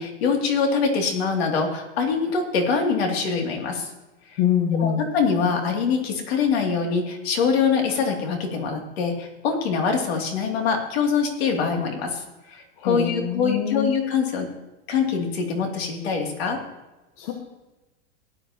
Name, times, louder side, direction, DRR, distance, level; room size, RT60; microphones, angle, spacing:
voice 1, 0.0-3.9 4.3-4.4 4.8-12.2 12.5-14.5 14.9-16.6, left 5 dB, 60° left, 3 dB, 2.7 m, -24 dB
voice 2, 4.4-5.1 12.8-13.9 17.2-17.3, left 9 dB, 45° left, 2 dB, 1.3 m, -24 dB
17.0 x 10.0 x 2.9 m, 1.1 s
supercardioid pair, 170°, 35 cm